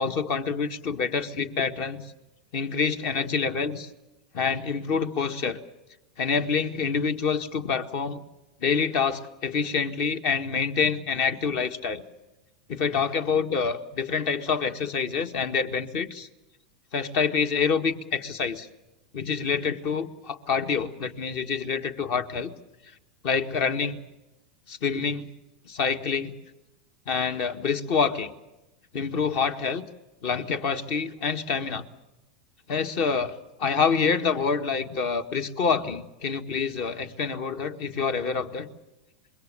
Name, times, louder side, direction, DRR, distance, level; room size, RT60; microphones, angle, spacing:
voice 1, 0.0-2.0 2.5-3.9 4.3-5.6 6.2-8.2 8.6-12.0 12.7-16.3 16.9-18.7 19.1-22.5 23.2-24.0 24.7-25.3 25.7-26.3 27.1-28.3 28.9-29.8 30.2-31.8 32.7-38.7, left 5 dB, 50° left, 8 dB, 1.7 m, -27 dB
25.5 x 22.5 x 6.9 m, 0.99 s
hypercardioid pair, 90°, 4 cm